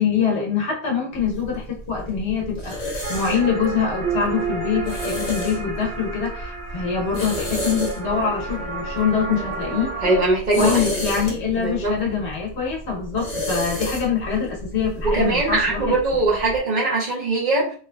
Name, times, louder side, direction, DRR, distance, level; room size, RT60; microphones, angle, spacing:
voice 1, 0.0-10.0 10.5-15.9, left 6 dB, 85° left, -1 dB, 1.2 m, -24 dB
sound 1, 1.1-16.6, equal, 40° left, 0.9 m, -32 dB
sound 2, 3.0-10.2, right 4 dB, 85° right, 1.2 m, -31 dB
voice 2, 10.0-11.0 11.6-11.9 15.0-17.7, right 2 dB, 50° right, -3 dB, 0.9 m, -21 dB
3.1 x 2.5 x 2.2 m, 0.43 s
omnidirectional pair, 1.1 m